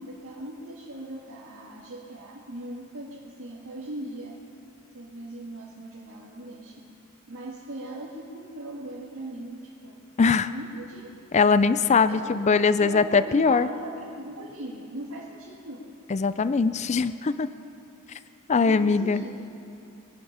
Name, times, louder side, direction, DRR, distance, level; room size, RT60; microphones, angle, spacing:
voice 1, 0.0-3.1 3.4-4.4 4.9-6.8 7.3-10.0 10.4-11.1 11.8-15.8 18.6-19.5, right 1 dB, 80° right, -6 dB, 1.8 m, -39 dB
voice 2, 10.2-10.5 11.3-13.7 16.1-17.5 18.5-19.2, left 4 dB, 30° left, 14 dB, 0.4 m, -21 dB
23.5 x 10.5 x 5.6 m, 2.6 s
head